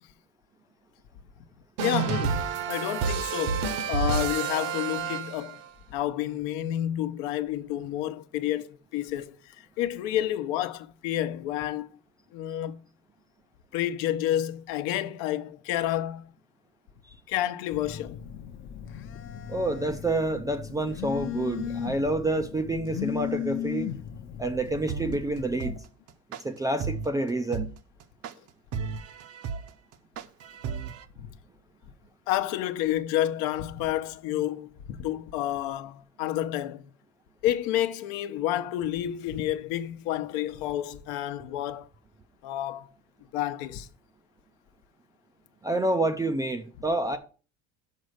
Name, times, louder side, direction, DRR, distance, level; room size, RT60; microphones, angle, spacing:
voice 1, 1.8-5.6 5.9-11.9 12.3-12.8 13.7-16.3 17.3-18.2 30.6-30.7 31.2-31.3 32.3-36.8 37.4-41.9 42.4-42.9 43.3-43.9, left 12 dB, 70° left, 0.9 m, -30 dB
sound 1, 1.8-5.7, right 6 dB, 70° right, 1.1 m, -29 dB
Telephone, 17.7-25.8, left 10 dB, 35° left, 0.6 m, -36 dB
voice 2, 19.5-23.9 24.4-25.7 26.4-27.7 45.6-47.2, right 2 dB, 10° right, 0.3 m, -28 dB
sound 2, 24.9-31.0, right 6 dB, 40° right, 0.7 m, -34 dB
6.3 x 5.3 x 6.4 m
cardioid pair, 145°, 36 cm